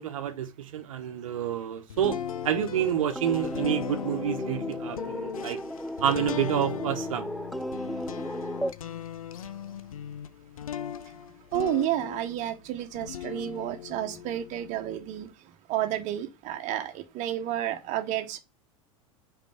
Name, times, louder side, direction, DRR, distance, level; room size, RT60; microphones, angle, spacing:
voice 1, 0.0-2.2 2.4-5.6 6.0-7.3, right 9 dB, 70° right, 1.0 m, -28 dB
sound 1, 1.9-12.5 12.9-15.3, left 10 dB, 75° left, 0.6 m, -38 dB
sound 2, 2.7-8.7, equal, ahead, 0.4 m, -35 dB
voice 2, 11.5-15.3 15.7-18.4, right 12 dB, 40° right, 1.1 m, -31 dB
5.2 x 4.5 x 5.8 m
figure-of-eight pair, 85°, 18 cm